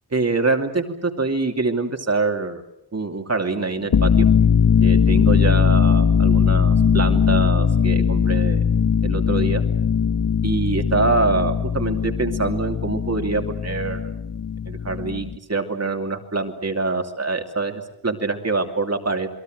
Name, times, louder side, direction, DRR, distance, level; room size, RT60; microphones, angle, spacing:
voice 1, 0.1-2.6 2.9-4.3 4.8-8.6 9.0-9.6 10.4-14.0 14.7-19.3, right 3 dB, 40° right, 5 dB, 2.7 m, -24 dB
sound 1, 3.8-15.4, left 7 dB, 80° left, 1.3 m, -19 dB
28.5 x 22.0 x 7.8 m, 0.81 s
wide cardioid pair, 110°, 38 cm